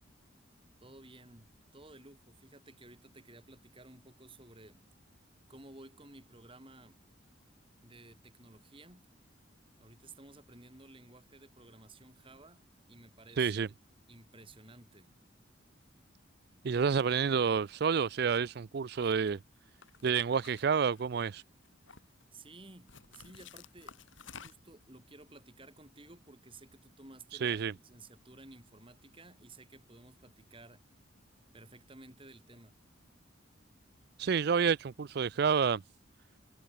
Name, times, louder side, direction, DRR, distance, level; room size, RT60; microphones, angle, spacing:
voice 1, 0.8-4.8 5.5-7.0 7.8-9.1 9.8-12.6 12.9-13.7 14.1-15.1 22.3-24.0 24.4-30.8 31.5-32.7, right 2 dB, 25° right, 5.2 m, -55 dB
voice 2, 13.4-13.7 16.6-19.4 20.0-21.4 27.4-27.7 34.2-35.8, right 6 dB, 55° right, 0.4 m, -29 dB
sound 1, 18.9-19.3 19.8-21.3 21.6-22.2 22.9-24.8, left 6 dB, 80° left, 4.9 m, -53 dB
head